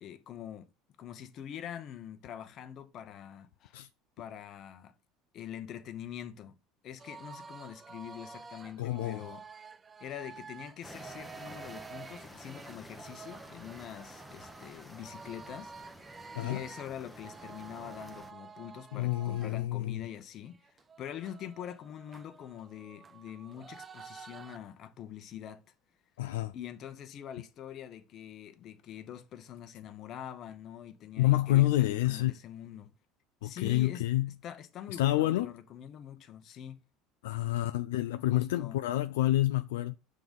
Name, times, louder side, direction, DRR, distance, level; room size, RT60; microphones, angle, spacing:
voice 1, 0.0-0.7 1.0-3.8 4.2-4.9 5.3-6.5 6.8-9.4 10.0-15.7 16.0-16.1 16.4-20.6 21.0-25.6 26.5-32.9 33.4-34.0 34.4-36.8 38.3-38.8, left 10 dB, 50° left, 1.0 m, -44 dB
sound 1, 7.0-19.6 20.0-20.1 20.5-24.6, right 5 dB, 25° right, 0.5 m, -50 dB
voice 2, 8.8-9.2 16.3-16.6 18.9-20.0 26.2-26.5 31.2-32.3 33.4-34.3 34.9-35.5 37.2-40.0, left 15 dB, 85° left, 0.3 m, -28 dB
sound 2, 10.8-18.3, equal, ahead, 0.9 m, -51 dB
5.9 x 3.8 x 5.3 m
supercardioid pair, 90°, 0 cm